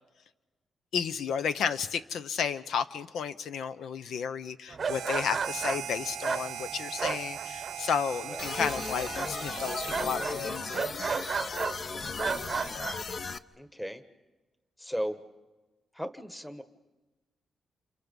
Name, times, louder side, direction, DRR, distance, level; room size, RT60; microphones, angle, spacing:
voice 1, 0.9-10.9, left 7 dB, 80° left, 12 dB, 0.8 m, -32 dB
sound 1, 4.7-8.0 8.2-8.8 9.1-11.8 12.2-13.0, right 5 dB, 40° right, 0.8 m, -34 dB
Harmonica, 4.8-10.8, right 9 dB, 90° right, 0.8 m, -39 dB
sound 2, 8.4-13.4, left 4 dB, 40° left, 0.7 m, -36 dB
voice 2, 12.2-12.9 13.6-14.0 14.8-15.2 15.9-16.6, equal, 5° left, 10 dB, 1.3 m, -37 dB
30.0 x 28.5 x 5.4 m, 1.1 s
wide cardioid pair, 140°, 0 cm